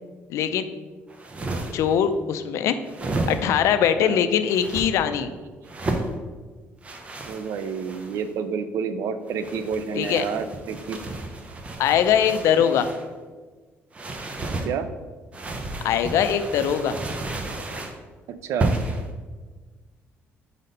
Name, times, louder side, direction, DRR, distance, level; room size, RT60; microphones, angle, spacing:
voice 1, 0.3-0.7 1.7-2.8 3.3-5.3 10.0-10.2 11.8-12.9 15.8-17.0, left 9 dB, 75° left, 10 dB, 0.4 m, -21 dB
sound 1, 1.1-2.0 2.8-3.7 4.5-4.9 5.6-6.1 6.8-8.3 9.3-13.1 13.9-14.7 15.3-18.0 18.6-19.1, right 2 dB, 25° right, 0.7 m, -32 dB
voice 2, 3.9-4.3 7.3-11.0 12.4-12.7 14.6-14.9 18.4-18.7, right 6 dB, 70° right, 11 dB, 0.5 m, -29 dB
5.0 x 4.1 x 5.3 m, 1.4 s
cardioid pair, 140°, 5 cm